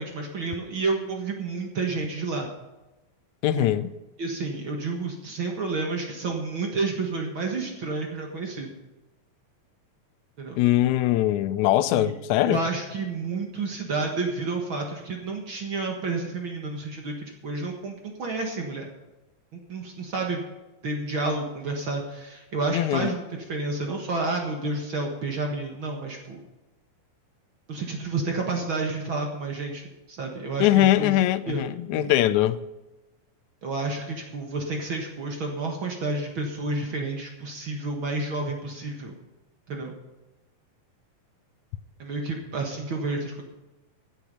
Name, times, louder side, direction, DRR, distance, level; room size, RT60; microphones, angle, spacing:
voice 1, 0.0-2.5 3.5-3.7 4.2-8.7 10.4-10.6 11.9-18.9 19.5-20.4 20.8-26.4 27.7-29.8 30.1-31.1 31.5-31.6 31.9-32.1 33.6-39.2 39.7-39.9 42.0-43.4, right 3 dB, 50° right, 1.9 m, -30 dB
voice 2, 3.4-3.9 10.6-12.6 22.7-23.2 30.6-32.6, left 14 dB, 75° left, 1.8 m, -22 dB
16.5 x 8.3 x 5.4 m
omnidirectional pair, 3.7 m